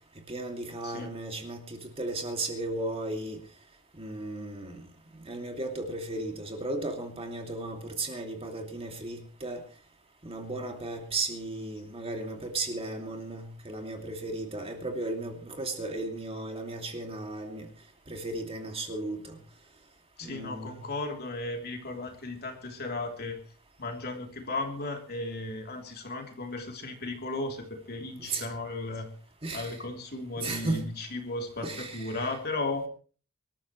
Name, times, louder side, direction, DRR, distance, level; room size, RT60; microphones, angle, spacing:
voice 1, 0.3-3.4 4.0-4.8 5.3-9.6 10.2-17.7 18.1-19.4 20.2-20.8 28.2-28.5 29.4-29.8 30.4-30.8 31.6-32.3, right 2 dB, 25° right, 3 dB, 2.5 m, -35 dB
voice 2, 20.2-23.4 23.8-29.1 29.5-32.9, left 2 dB, 50° left, 3 dB, 3.2 m, -35 dB
24.5 x 13.5 x 3.1 m, 0.39 s
head